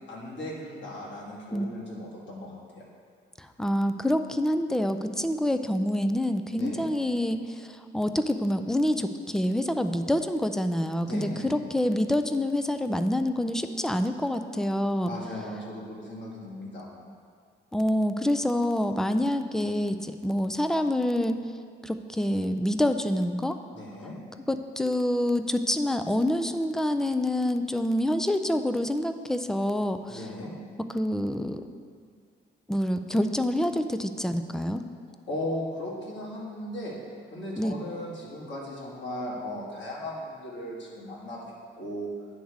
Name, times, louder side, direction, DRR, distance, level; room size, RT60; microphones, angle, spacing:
voice 1, 0.1-2.8 6.5-6.9 11.1-11.5 15.0-16.9 23.7-24.2 30.1-30.5 35.1-37.0 37.3-42.1, left 1 dB, 65° left, -4 dB, 2.2 m, -37 dB
voice 2, 3.4-7.7 7.9-15.1 17.7-21.5 21.8-23.6 24.5-30.2 30.9-31.7 32.7-34.8 37.6-37.7, left 1 dB, 5° left, 8 dB, 0.4 m, -27 dB
9.4 x 3.4 x 6.4 m, 2.1 s
cardioid pair, 90°, 20 cm